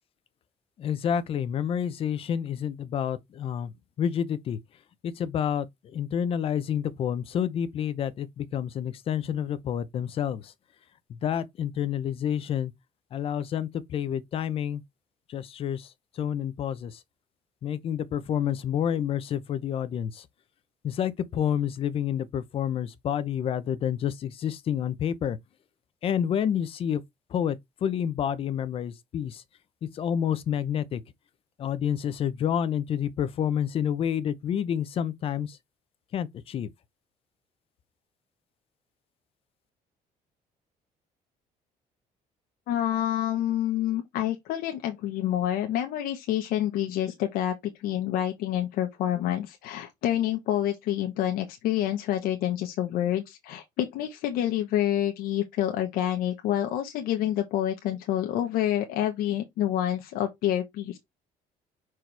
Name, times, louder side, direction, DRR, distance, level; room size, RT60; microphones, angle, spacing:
voice 1, 0.8-3.7 4.0-4.6 5.0-5.7 5.9-10.5 11.1-12.7 13.1-14.8 15.3-15.9 16.2-17.0 17.6-20.2 20.8-25.4 26.0-27.0 27.3-29.4 29.8-31.0 31.6-35.6 36.1-36.7, left 9 dB, 40° left, 0.7 m, -29 dB
voice 2, 42.7-61.0, left 11 dB, 80° left, 1.1 m, -28 dB
5.9 x 4.7 x 3.4 m
cardioid pair, 180°, 15 cm